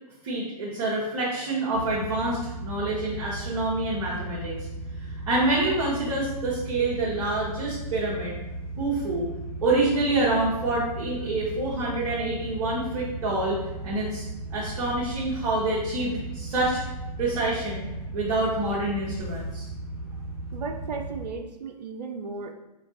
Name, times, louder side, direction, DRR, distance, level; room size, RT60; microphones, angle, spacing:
voice 1, 0.2-4.5 5.3-8.4 8.8-9.3 9.6-13.6 13.8-14.2 14.5-16.8 17.2-19.7, right 2 dB, 45° right, -8 dB, 0.9 m, -27 dB
sound 1, 1.7-21.3, right 2 dB, 40° left, 1.3 m, -36 dB
voice 2, 20.5-22.5, right 4 dB, 80° right, 5 dB, 0.4 m, -35 dB
4.4 x 2.3 x 2.5 m, 1.0 s
hypercardioid pair, 120°, 21 cm